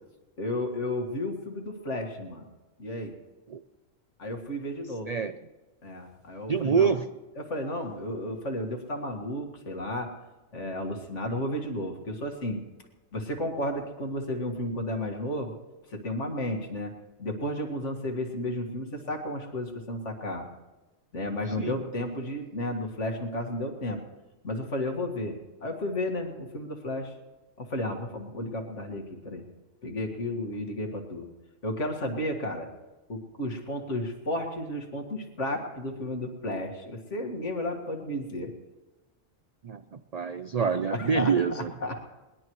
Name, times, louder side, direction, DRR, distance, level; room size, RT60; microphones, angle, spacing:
voice 1, 0.4-2.4 2.8-3.1 4.2-5.1 5.8-6.9 7.4-10.1 10.5-12.6 13.1-15.5 15.9-16.9 17.2-20.5 21.1-24.0 24.4-27.1 27.6-29.4 29.8-31.3 31.6-32.7 33.1-38.5 40.9-42.0, left 1 dB, 60° left, 3 dB, 2.2 m, -33 dB
voice 2, 6.5-7.1 21.6-21.8 39.6-41.7, right 6 dB, 75° right, 10 dB, 0.3 m, -26 dB
20.5 x 20.5 x 3.2 m, 1.2 s
omnidirectional pair, 1.4 m